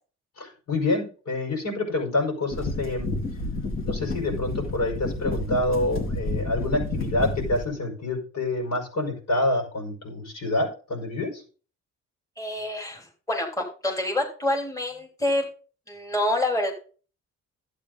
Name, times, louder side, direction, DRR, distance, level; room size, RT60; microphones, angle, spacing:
voice 1, 0.4-3.1 3.8-11.3, left 2 dB, 60° left, 1 dB, 5.6 m, -27 dB
sound 1, 2.5-7.6, left 2 dB, 45° left, 3.3 m, -30 dB
voice 2, 12.4-15.5 15.9-16.7, left 1 dB, 10° left, -1 dB, 3.2 m, -27 dB
12.0 x 8.8 x 4.0 m, 0.39 s
cardioid pair, 90°, 30 cm